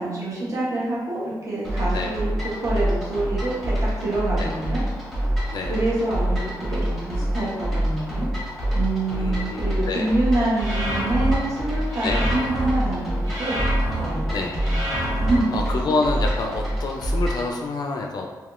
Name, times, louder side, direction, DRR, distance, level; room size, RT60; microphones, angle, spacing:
voice 1, 0.0-2.3 2.6-4.8 5.7-8.3 8.7-13.1 13.4-13.5 14.0-14.2 14.6-14.8 15.1-15.5, right 2 dB, 45° right, -7 dB, 0.9 m, -26 dB
sound 1, 1.6-17.5, right 1 dB, ahead, 1.0 m, -26 dB
voice 2, 9.1-10.1 12.0-12.2 14.3-14.5 15.5-18.3, left 3 dB, 60° left, 2 dB, 0.3 m, -27 dB
sound 2, 10.5-11.3 11.9-12.7 13.2-14.0 14.6-15.4, right 1 dB, 75° right, 1.3 m, -28 dB
3.4 x 2.8 x 2.4 m, 1.2 s
wide cardioid pair, 165°, 8 cm